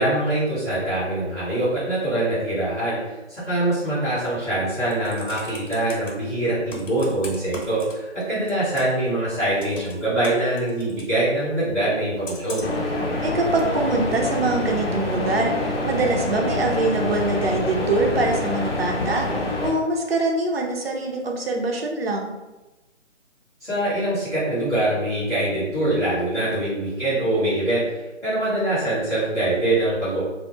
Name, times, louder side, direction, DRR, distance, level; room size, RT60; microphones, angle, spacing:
voice 1, 0.0-12.6 23.6-30.2, right 1 dB, ahead, -16 dB, 0.7 m, -24 dB
Computer keyboard, 4.9-6.1 6.7-8.2 8.5-9.1 9.6-11.1 12.2-12.8 13.6-13.7, left 2 dB, 85° left, 1.0 m, -38 dB
sound 1, 12.6-19.7, left 2 dB, 50° left, 0.6 m, -26 dB
voice 2, 13.2-22.3, right 2 dB, 55° right, 1 dB, 0.5 m, -24 dB
2.1 x 2.0 x 3.0 m, 1.1 s
figure-of-eight pair, 150°, 37 cm